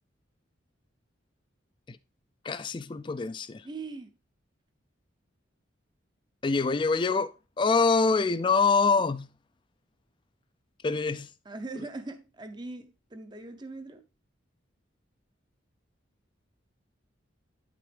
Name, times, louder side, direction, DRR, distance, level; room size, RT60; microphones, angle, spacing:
voice 1, 2.4-3.6 6.4-7.3 7.6-9.3 10.8-11.3, left 4 dB, 25° left, 0.3 m, -25 dB
voice 2, 3.6-4.1 11.4-14.0, right 3 dB, 20° right, 0.6 m, -40 dB
9.3 x 6.0 x 3.3 m
head